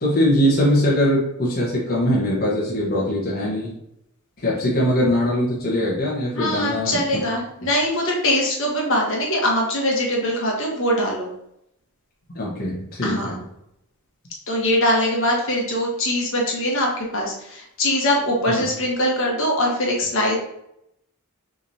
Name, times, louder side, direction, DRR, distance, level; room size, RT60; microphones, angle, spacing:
voice 1, 0.0-3.7 4.4-7.2 12.3-13.4 18.5-18.7, equal, 45° left, -5 dB, 1.1 m, -21 dB
voice 2, 6.4-11.3 13.0-13.4 14.5-20.4, left 1 dB, 60° left, -1 dB, 1.3 m, -22 dB
6.0 x 3.2 x 2.7 m, 0.79 s
head